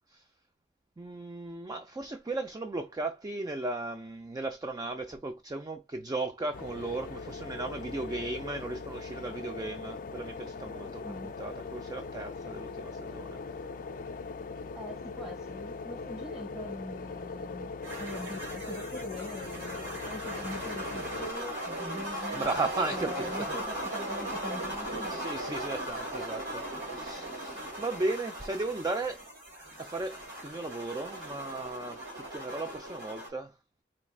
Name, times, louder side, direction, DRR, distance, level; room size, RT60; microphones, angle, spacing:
voice 1, 1.0-13.4 22.3-23.6 25.1-29.3 29.8-33.6, right 2 dB, 20° right, 0.4 m, -36 dB
sound 1, 6.5-21.3, left 4 dB, 50° left, 0.4 m, -40 dB
voice 2, 14.8-17.7 18.0-22.5 22.9-25.3, left 1 dB, 5° right, 1.7 m, -42 dB
sound 2, 17.8-33.3, right 1 dB, 80° right, 2.2 m, -38 dB
4.5 x 3.1 x 2.3 m
head